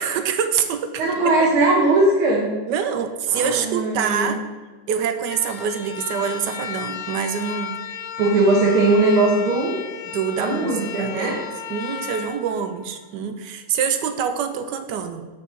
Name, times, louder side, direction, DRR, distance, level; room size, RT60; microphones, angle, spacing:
voice 1, 0.0-1.5 2.7-4.4 4.9-7.8 10.1-15.3, right 7 dB, 70° right, 9 dB, 1.1 m, -26 dB
voice 2, 1.0-2.5 3.3-4.4 8.2-9.8 10.4-11.4, right 2 dB, 85° right, -2 dB, 2.0 m, -19 dB
sound 1, 5.2-13.4, left 8 dB, 85° left, 1.5 m, -34 dB
6.1 x 5.1 x 6.1 m, 1.4 s
omnidirectional pair, 2.3 m